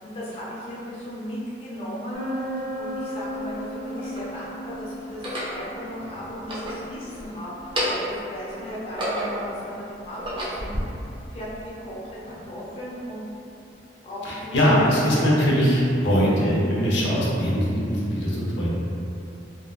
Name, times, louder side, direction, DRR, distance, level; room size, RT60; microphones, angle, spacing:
voice 1, 0.0-10.9 11.3-13.2 14.0-14.9 15.1-15.3, equal, 35° left, -8 dB, 0.5 m, -36 dB
sound 1, 2.1-13.6, equal, 90° right, 0.6 m, -38 dB
sound 2, 2.6-2.7 3.5-4.3 5.1-5.6 6.3-7.3 7.6-8.2 8.7-9.5 10.0-10.8, equal, 30° right, 0.5 m, -30 dB
voice 2, 14.2-18.7, equal, 75° left, -6 dB, 0.6 m, -21 dB
3.5 x 2.1 x 2.2 m, 2.7 s
head